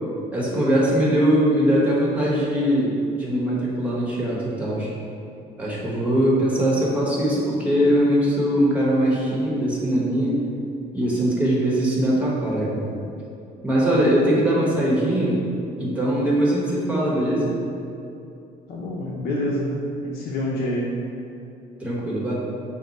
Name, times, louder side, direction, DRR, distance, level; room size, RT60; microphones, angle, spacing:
voice 1, 0.3-4.9 5.6-10.4 10.9-13.0 13.6-15.4 15.8-17.6 21.8-22.3, right 1 dB, 10° right, -6 dB, 1.1 m, -21 dB
voice 2, 18.7-19.8 20.0-21.0, left 1 dB, 70° left, -4 dB, 0.6 m, -26 dB
6.0 x 2.2 x 4.0 m, 2.6 s
cardioid pair, 110°, 17 cm